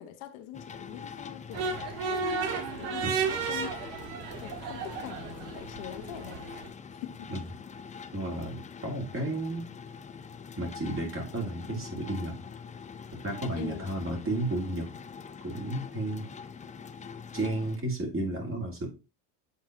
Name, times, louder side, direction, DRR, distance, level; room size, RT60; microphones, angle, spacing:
voice 1, 0.0-1.7 2.8-3.9 4.4-6.4 6.9-7.3 13.5-13.9, left 11 dB, 65° left, 1.3 m, -43 dB
sound 1, 0.5-17.8, left 6 dB, 15° left, 0.4 m, -44 dB
sound 2, 1.5-6.7, right 5 dB, 70° right, 1.8 m, -33 dB
voice 2, 8.1-9.7 10.6-12.5 13.2-14.9 15.4-16.3 17.3-18.9, right 1 dB, 25° right, 3.0 m, -32 dB
8.1 x 3.8 x 4.0 m
supercardioid pair, 95°, 49 cm